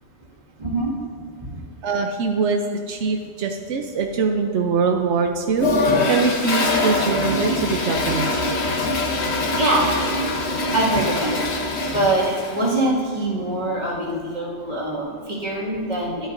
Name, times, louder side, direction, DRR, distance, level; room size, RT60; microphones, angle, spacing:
voice 1, 0.6-0.9 9.6-9.9 10.7-11.4 11.9-16.3, right 1 dB, 40° right, -6 dB, 2.2 m, -23 dB
voice 2, 1.8-2.6 2.9-8.4, right 5 dB, 85° right, 3 dB, 1.0 m, -23 dB
Toilet flush, 5.5-12.8, left 2 dB, 70° left, 1.3 m, -23 dB
11.0 x 11.0 x 2.6 m, 2.3 s
omnidirectional pair, 1.1 m